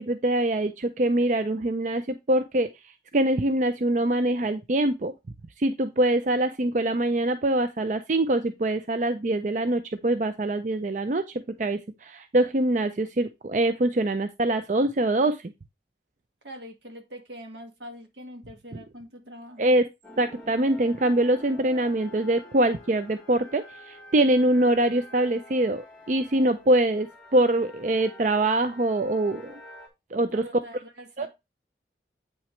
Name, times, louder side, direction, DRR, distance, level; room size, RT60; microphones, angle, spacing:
voice 1, 0.0-2.7 3.1-5.1 5.6-11.2 11.6-15.4 19.6-19.8 20.2-27.1 27.3-29.6 30.1-30.5 31.2-31.3, right 1 dB, 45° right, 0.5 m, -24 dB
voice 2, 16.4-19.8 30.3-31.3, equal, 80° right, 1.9 m, -43 dB
sound 1, 20.0-29.9, left 1 dB, 10° left, 2.3 m, -48 dB
8.6 x 5.8 x 3.2 m
head